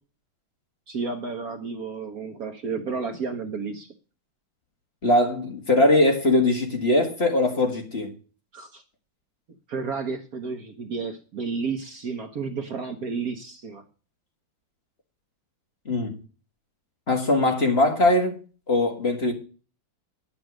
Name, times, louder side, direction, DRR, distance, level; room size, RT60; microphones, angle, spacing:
voice 1, 0.9-3.9 8.5-8.8 9.7-13.8, right 5 dB, 55° right, 1.3 m, -31 dB
voice 2, 5.0-8.1 15.9-16.1 17.1-18.4 18.7-19.3, left 2 dB, 30° left, 1.9 m, -21 dB
10.5 x 7.1 x 6.4 m
omnidirectional pair, 2.2 m